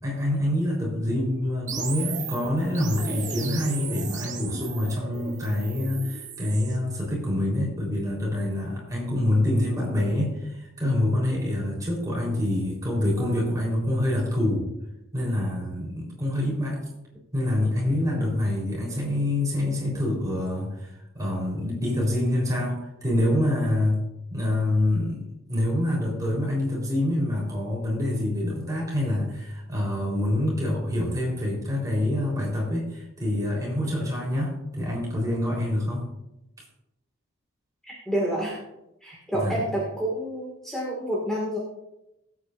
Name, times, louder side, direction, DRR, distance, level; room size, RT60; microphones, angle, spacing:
voice 1, 0.0-14.7 15.1-16.8 17.3-24.0 24.3-36.1 39.4-39.6, left 1 dB, 15° right, -4 dB, 3.9 m, -26 dB
sound 1, 1.7-6.8, right 6 dB, 40° right, 1.1 m, -36 dB
voice 2, 37.8-38.6 39.0-41.6, right 1 dB, ahead, -5 dB, 2.1 m, -29 dB
20.0 x 8.6 x 2.6 m, 0.90 s
head